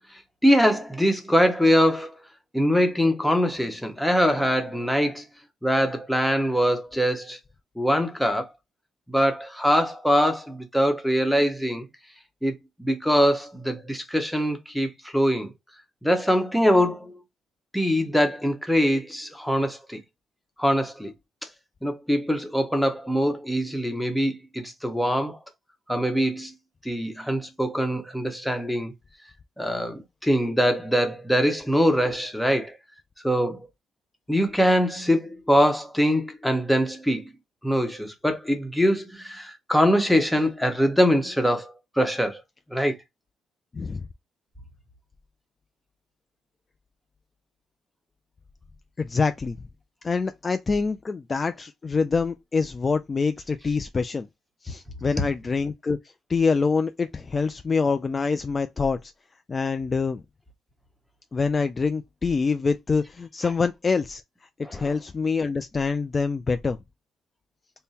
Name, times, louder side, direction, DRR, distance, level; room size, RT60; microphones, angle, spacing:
voice 1, 0.4-2.2 2.5-5.2 5.6-7.4 7.8-8.5 9.1-11.9 12.4-15.5 16.0-17.2 17.7-20.0 20.6-21.1 21.8-25.4 25.9-26.5 26.8-28.9 29.6-32.8 33.2-33.7 34.3-37.3 37.6-42.4 42.7-43.0 64.6-64.9, equal, ahead, 1.1 m, -23 dB
voice 2, 49.0-49.6 50.0-54.3 54.6-56.0 56.3-59.1 59.5-60.2 61.3-64.2 64.7-66.8, left 4 dB, 30° left, 0.3 m, -25 dB
3.5 x 2.2 x 4.2 m
cardioid pair, 90°, 0 cm